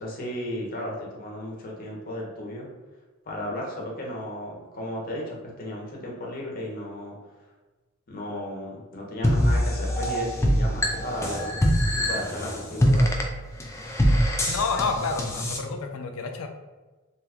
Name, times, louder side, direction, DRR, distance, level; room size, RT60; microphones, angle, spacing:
voice 1, 0.0-2.7 3.3-7.1 8.1-13.1, left 1 dB, 45° left, -2 dB, 0.8 m, -34 dB
sound 1, 9.2-15.6, equal, 15° left, 0.3 m, -24 dB
voice 2, 14.5-16.5, left 4 dB, 90° left, 5 dB, 0.4 m, -29 dB
2.8 x 2.3 x 3.4 m, 1.2 s
head